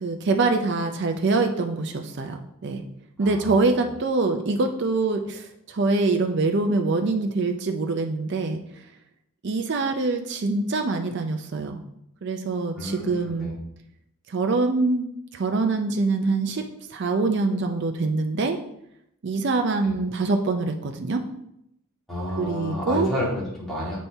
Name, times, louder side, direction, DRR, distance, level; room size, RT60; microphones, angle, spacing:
voice 1, 0.0-2.8 3.2-8.6 9.4-11.8 12.2-13.5 14.3-18.6 19.2-21.2 22.4-23.1, right 3 dB, 55° right, 5 dB, 0.5 m, -24 dB
voice 2, 3.2-3.6 12.8-13.6 22.1-24.0, left 1 dB, ahead, -8 dB, 2.1 m, -30 dB
7.2 x 4.2 x 3.4 m, 0.78 s
head